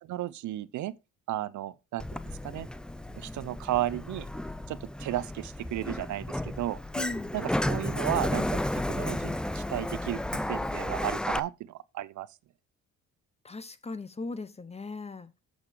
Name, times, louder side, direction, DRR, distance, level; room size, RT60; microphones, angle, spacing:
voice 1, 0.0-0.9 1.3-2.0 2.4-2.7 3.1-4.3 4.7-6.8 7.3-10.2 10.5-12.3, right 14 dB, 70° right, 0.7 m, -34 dB
Sliding door, 2.0-11.4, left 1 dB, 5° left, 0.4 m, -33 dB
voice 2, 6.9-7.3 13.4-15.3, left 3 dB, 20° left, 0.9 m, -38 dB
7.3 x 6.4 x 5.0 m
cardioid pair, 90°, 30 cm